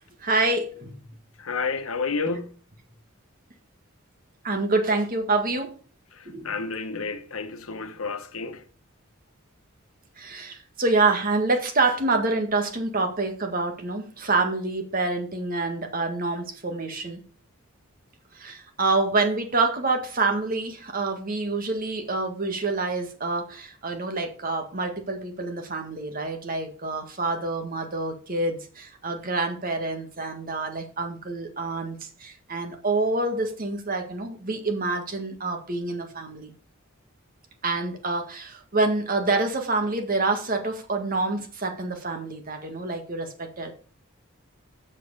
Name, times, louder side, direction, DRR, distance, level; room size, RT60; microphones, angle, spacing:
voice 1, 0.2-1.0 4.4-5.7 6.3-6.7 10.2-17.2 18.3-36.5 37.6-43.7, right 3 dB, 40° right, 1.7 m, -27 dB
voice 2, 1.4-2.5 6.1-8.6, left 4 dB, 80° left, 1.1 m, -30 dB
7.7 x 6.4 x 6.6 m
head